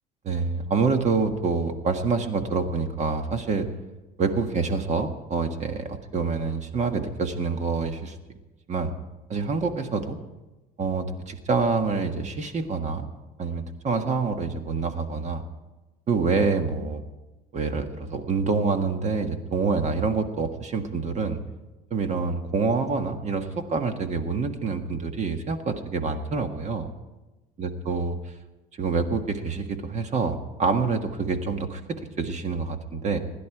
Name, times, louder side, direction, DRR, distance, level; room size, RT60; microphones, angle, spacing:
voice 1, 0.2-3.7 4.2-8.2 8.7-8.9 9.3-10.2 10.8-13.1 13.4-15.4 16.1-17.0 17.5-21.4 21.9-26.9 27.6-28.2 28.8-33.2, right 4 dB, 45° right, 7 dB, 1.6 m, -26 dB
26.0 x 11.0 x 4.9 m, 1.1 s
cardioid pair, 110°, 17 cm